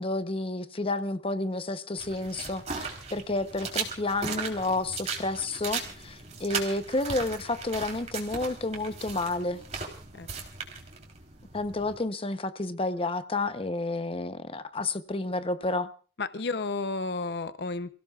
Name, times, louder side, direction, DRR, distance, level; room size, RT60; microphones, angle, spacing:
voice 1, 0.0-9.6 11.5-15.9, left 2 dB, 30° left, 0.8 m, -30 dB
sound 1, 2.0-12.0, right 5 dB, 40° right, 3.6 m, -37 dB
voice 2, 16.2-17.9, left 3 dB, 65° left, 0.8 m, -32 dB
29.5 x 16.5 x 2.4 m
head